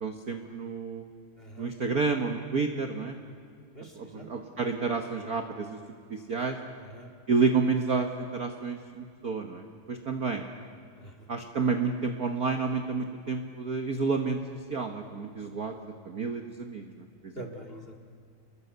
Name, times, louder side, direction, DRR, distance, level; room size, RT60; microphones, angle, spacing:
voice 1, 0.0-1.0 1.6-3.1 4.0-5.8 6.3-6.5 7.3-9.6 9.9-10.4 11.3-14.4 14.7-15.7 16.1-16.8, right 4 dB, 50° right, 5 dB, 1.1 m, -29 dB
voice 2, 1.4-1.7 3.7-4.3 6.8-7.1 11.0-11.1 17.4-18.0, right 1 dB, 20° left, 5 dB, 2.0 m, -44 dB
29.5 x 22.0 x 8.1 m, 2.3 s
omnidirectional pair, 3.5 m